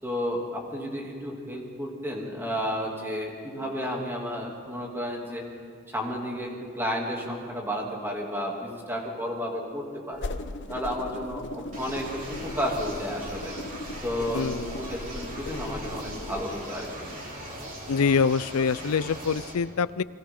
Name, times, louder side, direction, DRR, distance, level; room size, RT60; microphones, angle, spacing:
voice 1, 0.0-5.4 5.9-10.3 10.7-13.5 14.0-14.5 14.7-17.1, equal, 10° right, -1 dB, 2.8 m, -32 dB
sound 1, 10.1-16.6, left 2 dB, 55° left, 0.8 m, -38 dB
sound 2, 11.7-19.5, right 1 dB, 40° right, 3.7 m, -39 dB
voice 2, 14.3-14.8 17.9-20.0, left 5 dB, 80° left, 18 dB, 0.5 m, -25 dB
30.0 x 22.5 x 3.9 m, 2.3 s
head